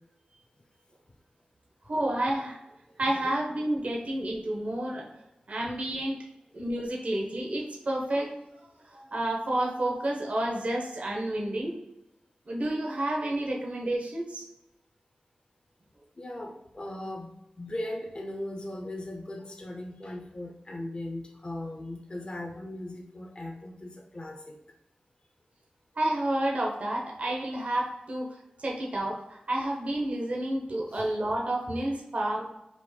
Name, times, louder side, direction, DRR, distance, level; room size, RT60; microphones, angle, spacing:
voice 1, 1.9-2.6 3.0-5.0 5.5-6.2 6.5-8.5 8.9-11.8 12.5-14.4 26.0-28.3 28.6-32.5, right 1 dB, 55° right, -2 dB, 1.0 m, -30 dB
voice 2, 3.1-3.4 16.2-24.6 30.9-31.1, left 1 dB, 35° left, 1 dB, 0.7 m, -38 dB
4.5 x 2.5 x 4.2 m, 0.88 s
cardioid pair, 55°, 3 cm